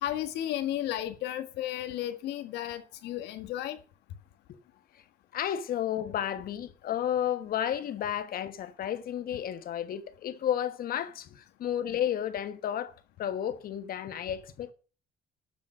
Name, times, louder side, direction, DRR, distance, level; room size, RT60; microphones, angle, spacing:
voice 1, 0.0-3.8, left 12 dB, 85° left, 1.7 m, -33 dB
voice 2, 5.3-12.9 13.2-14.7, left 10 dB, 60° left, 1.3 m, -32 dB
12.5 x 7.1 x 5.1 m
cardioid pair, 110°, 17 cm